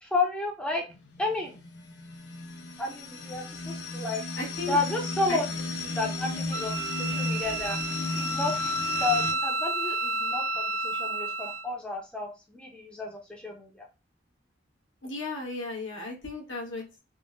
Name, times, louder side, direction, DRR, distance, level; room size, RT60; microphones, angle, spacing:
voice 1, 0.0-0.8 1.2-1.6 2.8-4.2 4.7-5.5 5.8-13.9, left 3 dB, 5° left, 0 dB, 0.5 m, -32 dB
sound 1, 0.9-9.3, left 3 dB, 65° left, 0.5 m, -34 dB
voice 2, 4.4-4.8 5.3-5.4 15.0-17.0, left 3 dB, 85° left, -1 dB, 1.2 m, -35 dB
Wind instrument woodwind instrument, 6.5-11.7, right 2 dB, 70° right, 0.4 m, -31 dB
3.6 x 2.1 x 2.4 m, 0.28 s
head